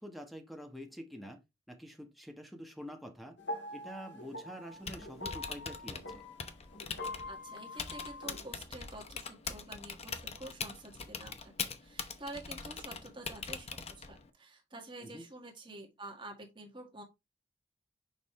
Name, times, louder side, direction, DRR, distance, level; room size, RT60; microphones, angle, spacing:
voice 1, 0.0-1.4 1.7-3.4 3.7-6.2 15.0-15.3, equal, ahead, 1.2 m, -47 dB
sound 1, 3.4-8.6, left 1 dB, 85° left, 1.8 m, -44 dB
Typing, 4.7-14.3, left 5 dB, 35° left, 0.8 m, -43 dB
voice 2, 7.3-17.0, right 2 dB, 30° right, 1.8 m, -48 dB
6.6 x 5.3 x 3.2 m
head